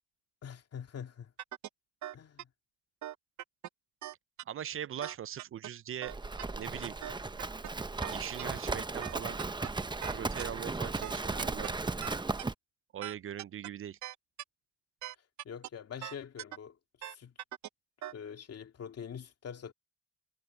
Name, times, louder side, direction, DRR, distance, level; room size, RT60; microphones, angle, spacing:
voice 1, 0.4-1.3 2.1-2.5 15.4-17.3 18.1-19.7, left 7 dB, 55° left, 2.4 m, -45 dB
sound 1, 1.4-1.7 2.0-2.4 3.0-3.7 4.0-4.4 5.0-5.7 6.0-6.4 7.0-7.7 8.0-8.4 9.0-9.7 10.0-10.4 11.0-11.7 12.0-12.4 13.0-13.7 14.0-14.4 15.0-15.7 16.0-16.6 17.0-17.7 18.0-18.1, right 13 dB, 70° right, 0.8 m, -41 dB
voice 2, 4.5-6.1 6.6-7.0 8.1-9.4 10.1-11.8 12.9-14.0, right 10 dB, 45° right, 0.5 m, -41 dB
Livestock farm animals working animals, 6.1-12.5, right 3 dB, 15° right, 0.9 m, -36 dB
cardioid pair, 90°, 30 cm